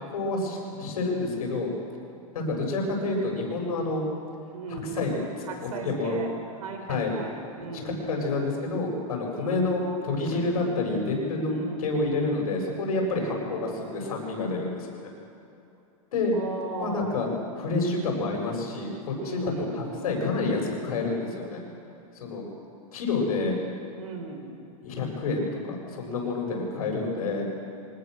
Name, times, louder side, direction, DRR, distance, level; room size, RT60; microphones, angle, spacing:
voice 1, 0.1-1.7 2.3-4.0 4.9-5.3 5.6-6.2 6.9-7.1 8.1-15.1 16.1-16.3 16.8-17.3 17.6-21.6 22.2-22.5 22.9-23.5 24.8-27.5, left 3 dB, 85° left, 0 dB, 7.4 m, -28 dB
voice 2, 4.5-8.4 9.3-9.8 11.5-12.1 13.0-13.5 16.3-17.4 19.2-20.1 24.0-24.5, right 4 dB, 80° right, 5 dB, 4.7 m, -37 dB
25.0 x 20.5 x 6.7 m, 2.6 s
supercardioid pair, 165°, 18 cm